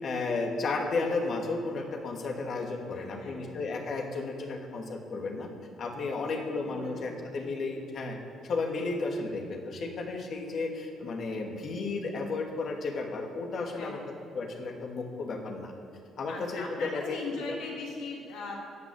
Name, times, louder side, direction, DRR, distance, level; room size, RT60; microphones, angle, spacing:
voice 1, 0.0-5.5 5.8-8.2 8.4-14.0 14.3-15.7 16.2-17.2, left 3 dB, 55° left, 2 dB, 2.3 m, -33 dB
voice 2, 2.9-3.6 6.1-7.5 13.7-14.3 16.3-18.5, left 3 dB, 75° left, -3 dB, 3.3 m, -41 dB
16.0 x 6.1 x 8.8 m, 2.7 s
hypercardioid pair, 50°, 0 cm